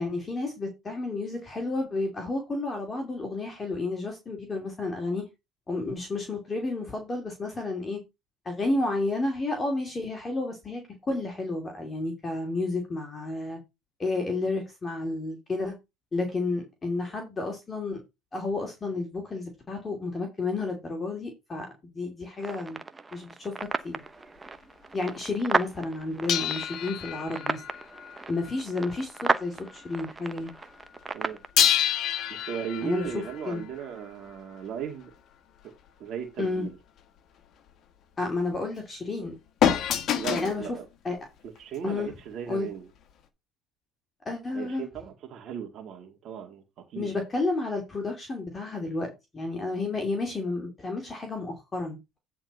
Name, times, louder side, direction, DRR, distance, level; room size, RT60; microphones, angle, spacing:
voice 1, 0.0-5.2 5.7-8.0 8.4-10.8 11.1-13.6 14.0-15.7 16.1-18.0 18.3-21.7 21.9-22.8 23.1-23.5 23.8-24.0 24.9-27.6 28.3-30.5 32.8-33.0 33.5-33.6 36.4-36.7 38.2-39.3 40.3-40.7 41.0-41.2 41.8-42.1 42.5-42.7 44.3-44.9 46.9-52.2, left 3 dB, 25° left, 2.7 m, -31 dB
sound 1, 22.4-31.5, right 3 dB, 15° right, 1.0 m, -34 dB
sound 2, 26.3-29.4 29.7-29.9 31.6-34.3 39.6-40.6 41.6-41.7, left 10 dB, 50° left, 1.5 m, -28 dB
voice 2, 32.5-35.1 35.6-35.7 36.0-36.8 40.2-40.9 41.6-42.9 44.5-47.2, right 7 dB, 50° right, 2.1 m, -36 dB
9.6 x 4.3 x 5.4 m
supercardioid pair, 100°, 0 cm